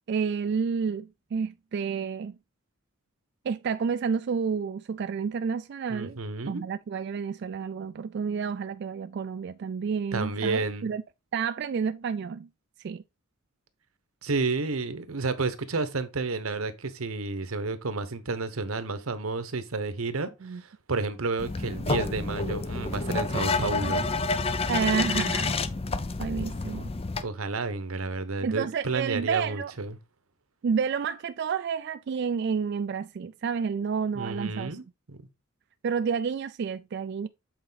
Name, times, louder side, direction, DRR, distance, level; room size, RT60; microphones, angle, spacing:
voice 1, 0.1-2.4 3.5-6.2 6.5-11.0 11.3-12.5 12.8-13.0 20.4-20.6 24.7-25.5 26.2-26.9 28.4-29.7 30.6-34.8 35.8-37.3, right 6 dB, 55° right, 0.3 m, -30 dB
voice 2, 5.9-6.6 10.1-10.9 14.2-24.1 27.2-30.0 34.1-35.2, right 3 dB, 90° right, 1.0 m, -31 dB
sound 1, 21.4-27.2, left 3 dB, 30° left, 0.5 m, -29 dB
8.0 x 4.2 x 3.9 m
head